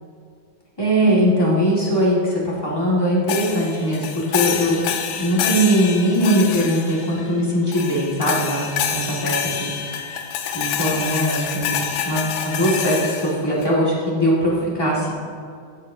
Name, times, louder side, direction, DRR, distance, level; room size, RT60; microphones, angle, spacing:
voice 1, 0.8-4.8 5.2-8.6 8.9-9.7 10.5-11.7 12.0-15.1, equal, 15° left, -6 dB, 0.8 m, -20 dB
sound 1, 3.3-7.3 7.7-13.7, left 8 dB, 85° left, 2.6 m, -27 dB
15.5 x 11.0 x 2.8 m, 2.3 s
omnidirectional pair, 4.3 m